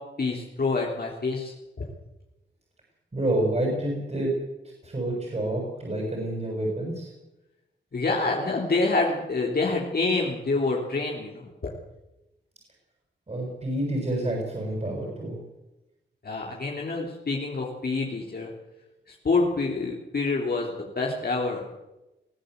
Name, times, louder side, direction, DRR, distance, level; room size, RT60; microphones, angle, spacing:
voice 1, 0.2-1.8 7.9-11.7 16.2-18.5 19.1-21.6, left 3 dB, 50° left, -2 dB, 3.5 m, -27 dB
voice 2, 3.1-4.3 4.8-7.1 13.3-15.4, right 1 dB, 35° right, 0 dB, 7.2 m, -28 dB
22.5 x 15.5 x 8.2 m, 0.97 s
wide cardioid pair, 85°, 20 cm